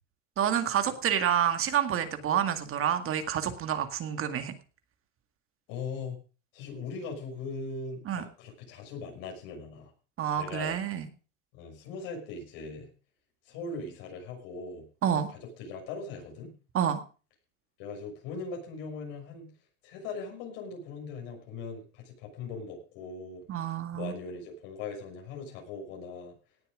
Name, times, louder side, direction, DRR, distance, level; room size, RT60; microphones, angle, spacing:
voice 1, 0.4-4.5 8.1-8.2 10.2-11.1 15.0-15.3 16.7-17.0 23.5-24.1, right 9 dB, 35° right, 8 dB, 2.0 m, -28 dB
voice 2, 5.7-6.2 6.5-9.9 10.4-10.8 11.5-12.9 13.5-14.9 15.3-16.5 17.8-19.5 19.8-23.4 23.9-26.3, left 4 dB, 65° left, 2 dB, 6.4 m, -40 dB
18.0 x 7.4 x 5.1 m, 0.36 s
supercardioid pair, 115°, 36 cm